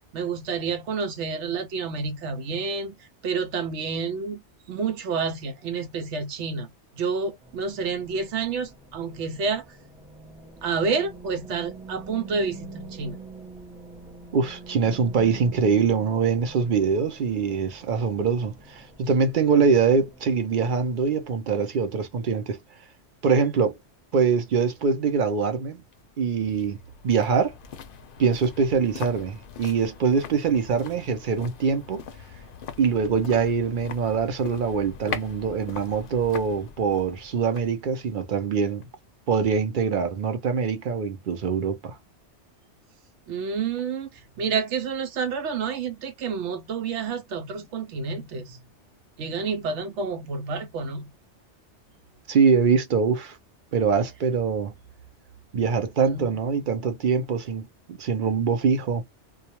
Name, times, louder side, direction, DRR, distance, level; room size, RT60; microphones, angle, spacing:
voice 1, 0.1-6.7 7.0-9.7 10.6-13.2 43.3-48.6 49.2-51.1 56.1-56.3, right 5 dB, 85° right, 0.9 m, -29 dB
sound 1, 7.4-21.2, right 3 dB, 5° right, 0.5 m, -46 dB
voice 2, 14.3-22.6 23.2-23.8 24.1-25.8 26.2-26.8 27.0-27.5 28.2-32.0 32.8-38.9 39.3-42.0 52.3-53.4 53.7-54.7 55.5-59.0, right 5 dB, 55° right, 0.7 m, -23 dB
sound 2, 25.9-39.1 39.4-39.5, left 7 dB, 60° left, 0.6 m, -41 dB
2.3 x 2.2 x 2.8 m
omnidirectional pair, 1.2 m